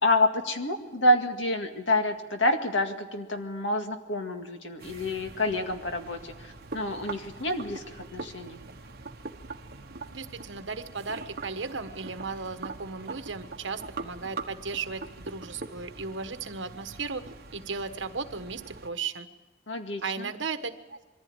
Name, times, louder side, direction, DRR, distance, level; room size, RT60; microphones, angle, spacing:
voice 1, 0.0-8.6 19.7-20.3, left 1 dB, 75° left, 5 dB, 2.0 m, -28 dB
sound 1, 4.8-18.9, right 3 dB, 55° right, 1.3 m, -43 dB
voice 2, 10.1-17.2 17.5-19.3 20.0-21.0, right 4 dB, 70° right, 9 dB, 1.4 m, -35 dB
22.5 x 14.5 x 8.9 m, 1.2 s
head